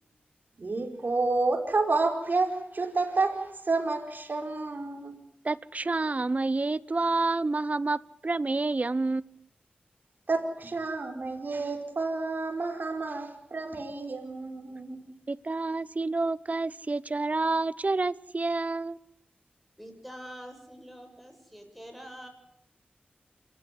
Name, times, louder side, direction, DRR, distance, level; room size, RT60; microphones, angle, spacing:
voice 1, 0.6-5.2 10.3-15.1, right 3 dB, 60° right, 4.9 m, -30 dB
voice 2, 5.4-9.5 15.3-19.0, right 3 dB, 45° right, 0.8 m, -29 dB
voice 3, 19.8-22.3, equal, ahead, 7.1 m, -45 dB
27.0 x 14.5 x 9.6 m
cardioid pair, 50°, 4 cm